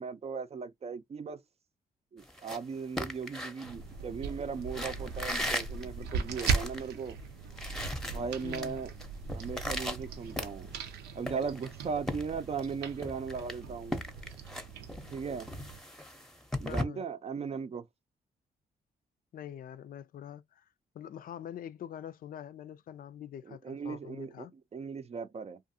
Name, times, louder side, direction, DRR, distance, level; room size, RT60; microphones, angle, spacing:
voice 1, 0.0-1.4 2.1-7.2 8.0-8.9 9.3-10.7 11.2-14.0 15.1-15.5 16.6-17.8 23.4-24.5 24.7-25.6, right 5 dB, 40° right, 0.5 m, -37 dB
sound 1, 2.2-4.3 4.7-6.9 7.2-7.3 7.5-8.7 9.0-10.9 11.3-12.7 13.0-16.8, left 1 dB, 5° left, 0.7 m, -38 dB
sound 2, 3.6-15.8, right 5 dB, 90° right, 0.5 m, -39 dB
voice 2, 8.4-8.8 16.7-17.0 19.3-20.6 20.9-24.5, left 10 dB, 60° left, 0.4 m, -44 dB
2.5 x 2.5 x 2.6 m
supercardioid pair, 60°, 17 cm